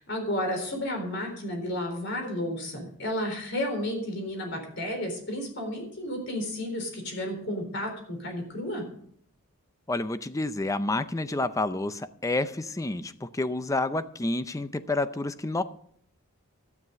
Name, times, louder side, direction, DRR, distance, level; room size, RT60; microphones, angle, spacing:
voice 1, 0.0-8.8, left 1 dB, 55° left, 3 dB, 3.9 m, -32 dB
voice 2, 9.9-15.6, left 2 dB, 15° left, 13 dB, 0.5 m, -29 dB
12.5 x 9.6 x 5.2 m, 0.62 s
head